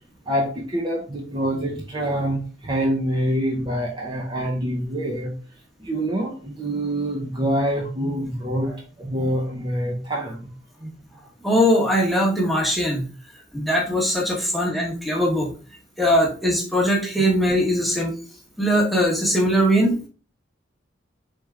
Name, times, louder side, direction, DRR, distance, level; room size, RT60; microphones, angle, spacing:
voice 1, 0.3-5.3 5.8-10.4 10.8-10.9, equal, 25° right, -2 dB, 0.7 m, -26 dB
voice 2, 11.4-13.1 13.5-15.5 16.0-18.1 18.6-20.0, equal, ahead, -2 dB, 1.1 m, -20 dB
4.2 x 3.6 x 3.3 m, 0.37 s
head